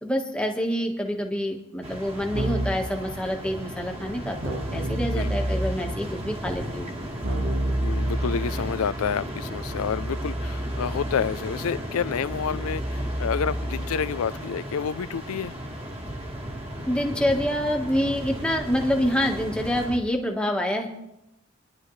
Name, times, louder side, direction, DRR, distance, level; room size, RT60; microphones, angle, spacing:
voice 1, 0.0-6.9 16.9-20.9, equal, 5° left, 1.3 m, -27 dB
sound 1, 1.8-20.0, equal, 25° right, 1.8 m, -35 dB
Keyboard (musical), 2.3-3.0 4.4-6.0 7.2-14.3, right 1 dB, 75° right, 1.4 m, -30 dB
voice 2, 7.8-15.5, left 7 dB, 80° left, 0.4 m, -29 dB
23.5 x 11.0 x 3.2 m
head